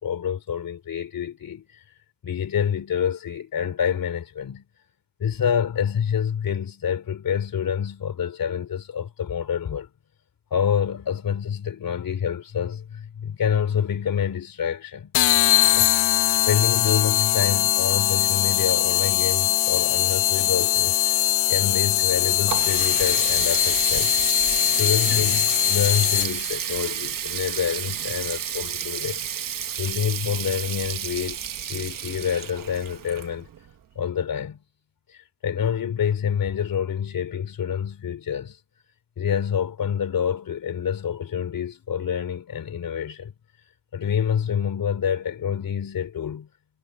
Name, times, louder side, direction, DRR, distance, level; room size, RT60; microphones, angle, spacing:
voice 1, 0.0-1.6 2.2-4.6 5.2-9.9 10.5-15.1 15.8-15.9 16.3-21.0 21.5-24.1 24.7-29.2 29.8-31.4 31.7-33.5 34.0-34.6 35.1-38.6 39.2-43.3 43.9-46.5, left 8 dB, 45° left, 3.6 m, -27 dB
sound 1, 15.1-26.5, left 14 dB, 80° left, 1.2 m, -21 dB
Water tap faucet, 22.0-33.7, right 9 dB, 40° right, 1.3 m, -31 dB
cardioid pair, 165°, 48 cm